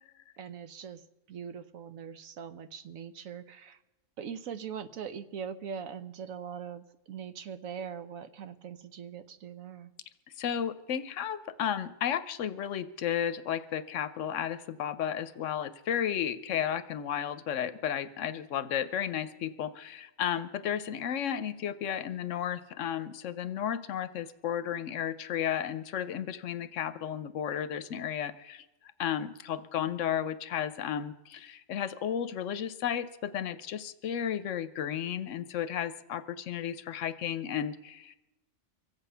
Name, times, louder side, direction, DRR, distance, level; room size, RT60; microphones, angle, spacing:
voice 1, 0.4-1.0 1.3-3.8 4.2-9.9, right 7 dB, 80° right, 11 dB, 1.2 m, -41 dB
voice 2, 10.4-28.6 29.0-38.1, left 9 dB, 70° left, 13 dB, 1.0 m, -33 dB
24.0 x 8.2 x 5.5 m, 0.99 s
omnidirectional pair, 1.4 m